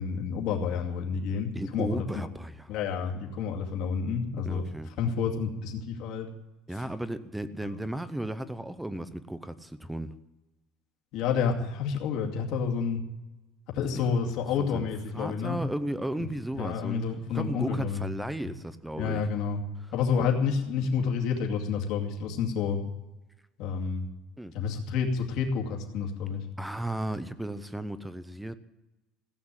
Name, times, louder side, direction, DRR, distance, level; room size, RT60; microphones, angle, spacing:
voice 1, 0.0-2.0 2.7-4.6 5.0-6.3 7.7-7.8 11.1-13.0 13.7-15.6 16.2-16.3 16.5-18.0 19.0-19.6 19.9-22.8 23.6-24.1 24.5-26.4, left 6 dB, 50° left, 1 dB, 2.4 m, -29 dB
voice 2, 1.5-2.7 4.4-4.9 6.7-10.1 13.9-14.0 14.6-14.9 15.1-17.0 17.3-19.2 20.2-20.3 24.4-24.6 26.6-28.6, right 1 dB, 5° right, 13 dB, 0.6 m, -35 dB
16.0 x 8.6 x 8.7 m, 1.0 s
cardioid pair, 180°, 0 cm